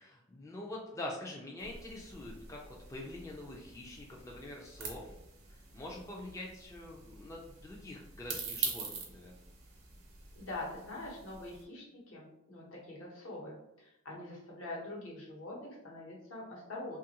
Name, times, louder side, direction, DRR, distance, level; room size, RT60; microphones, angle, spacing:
voice 1, 0.0-2.6 2.9-5.1 5.5-9.3, left 1 dB, 15° left, -2 dB, 0.3 m, -45 dB
sound 1, 1.6-11.6, right 5 dB, 80° right, 0.7 m, -45 dB
voice 2, 10.3-17.0, left 2 dB, 70° left, -3 dB, 1.0 m, -44 dB
2.9 x 2.4 x 2.8 m, 0.82 s
head